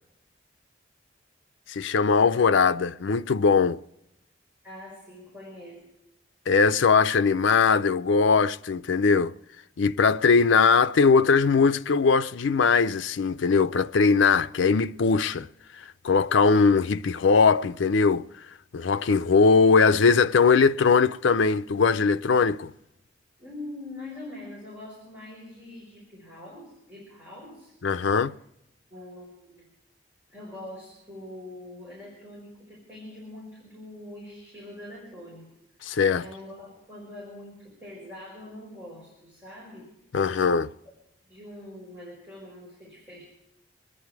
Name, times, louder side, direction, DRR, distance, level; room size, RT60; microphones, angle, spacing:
voice 1, 1.7-3.8 6.5-9.3 9.8-15.5 16.0-18.3 18.7-22.7 27.8-28.3 35.8-36.2 40.1-40.7, left 5 dB, 80° left, 0.5 m, -20 dB
voice 2, 4.6-5.8 23.4-28.3 28.9-29.7 30.3-35.5 36.2-39.9 41.3-43.2, left 1 dB, 10° right, 5.1 m, -43 dB
26.0 x 10.0 x 4.7 m
head